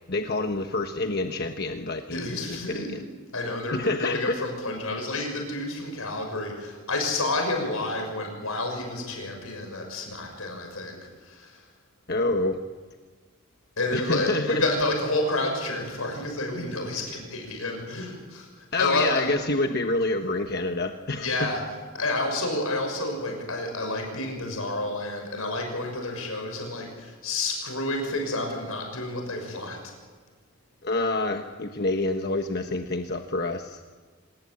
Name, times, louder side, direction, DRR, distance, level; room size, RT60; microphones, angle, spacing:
voice 1, 0.1-3.0 3.7-4.3 12.1-12.6 13.9-14.6 18.7-21.3 30.8-33.8, left 2 dB, 50° left, 5 dB, 1.2 m, -27 dB
voice 2, 2.1-3.0 3.3-11.6 13.8-19.3 21.2-21.6 21.9-29.8, left 2 dB, 85° left, 3 dB, 6.1 m, -29 dB
26.5 x 19.5 x 8.6 m, 1.5 s
head